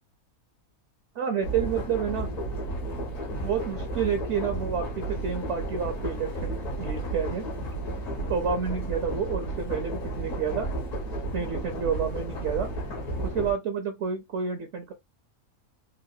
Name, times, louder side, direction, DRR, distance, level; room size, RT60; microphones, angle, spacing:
voice 1, 1.1-2.3 3.4-7.5 8.3-10.7 11.3-12.7 13.2-14.9, right 7 dB, 60° right, 0.9 m, -29 dB
sound 1, 1.4-13.5, right 1 dB, 60° left, 1.8 m, -33 dB
3.9 x 2.5 x 2.7 m
omnidirectional pair, 1.5 m